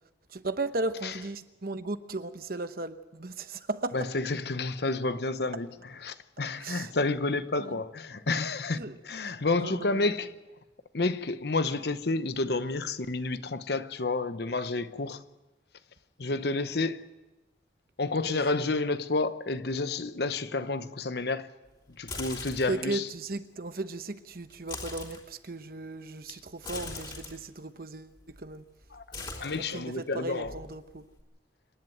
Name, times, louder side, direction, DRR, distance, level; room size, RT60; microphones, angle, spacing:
voice 1, 0.3-4.1 6.6-6.9 7.6-7.8 8.7-9.0 9.5-10.1 18.3-18.5 22.7-28.6 29.5-31.0, right 2 dB, 50° right, 1.0 m, -36 dB
voice 2, 3.9-5.7 6.0-8.8 9.0-10.4 10.9-15.2 16.2-17.0 18.0-21.5 22.0-23.0 28.9-29.0 29.4-30.5, left 3 dB, 60° left, 0.9 m, -30 dB
sound 1, 21.9-22.8 24.5-25.2 26.6-27.3 28.1-28.6 28.8-30.0 30.4-31.2, left 3 dB, 25° left, 3.4 m, -40 dB
26.5 x 11.0 x 9.1 m
head